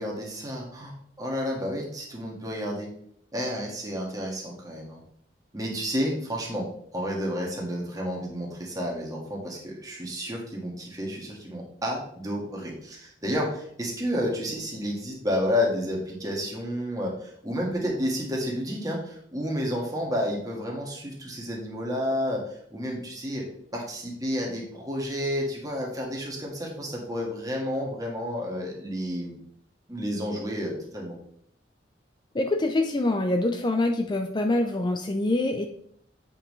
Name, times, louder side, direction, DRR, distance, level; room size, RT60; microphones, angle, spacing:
voice 1, 0.0-2.9 3.3-5.0 5.5-6.7 6.9-29.4 29.9-31.1, equal, 20° right, -1 dB, 1.7 m, -31 dB
voice 2, 32.3-35.7, left 2 dB, 25° left, 4 dB, 0.5 m, -25 dB
8.3 x 5.4 x 3.2 m, 0.66 s
head